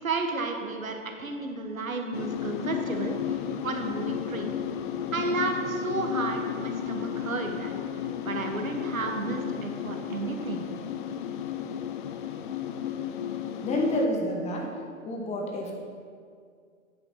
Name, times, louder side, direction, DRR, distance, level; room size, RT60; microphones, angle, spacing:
voice 1, 0.0-4.6 5.1-7.7 8.2-10.7, right 3 dB, 85° right, 4 dB, 1.4 m, -32 dB
sound 1, 2.1-14.1, left 9 dB, 40° left, 0.5 m, -33 dB
voice 2, 13.6-14.7 15.0-15.7, left 1 dB, 15° left, 0 dB, 1.2 m, -28 dB
9.6 x 5.7 x 5.6 m, 2.2 s
hypercardioid pair, 125°, 40 cm